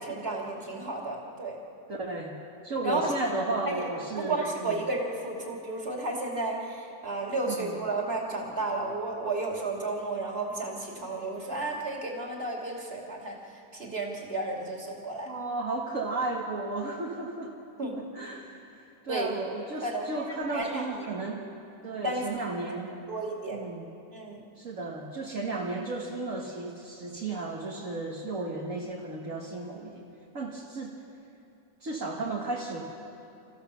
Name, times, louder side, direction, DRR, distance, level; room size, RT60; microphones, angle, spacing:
voice 1, 0.0-1.6 2.8-3.0 3.7-3.8 4.2-13.4 13.7-15.4 17.8-18.0 19.1-19.3 19.8-20.2 20.5-21.2 22.0-22.4 23.1-23.6 24.1-24.4, right 2 dB, 40° right, -1 dB, 3.1 m, -33 dB
voice 2, 1.9-2.4 2.6-4.8 7.5-7.8 15.3-17.5 18.0-21.5 21.8-23.0 23.5-23.9 24.6-30.1 30.3-31.0 31.8-32.8, right 2 dB, 55° right, -3 dB, 2.0 m, -34 dB
29.5 x 15.0 x 6.9 m, 2.6 s
omnidirectional pair, 1.6 m